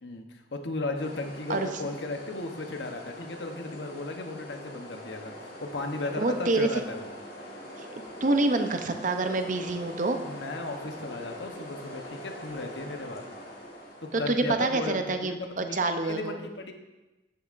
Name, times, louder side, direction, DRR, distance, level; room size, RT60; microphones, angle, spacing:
voice 1, 0.0-5.3 5.6-7.1 10.2-13.2 14.0-16.7, left 2 dB, 90° left, 4 dB, 1.0 m, -35 dB
sound 1, 0.9-14.4, equal, 60° left, 1.7 m, -43 dB
voice 2, 6.2-6.8 8.2-10.2 14.1-16.4, right 2 dB, 45° right, 7 dB, 0.7 m, -27 dB
13.5 x 6.8 x 2.6 m, 1.1 s
head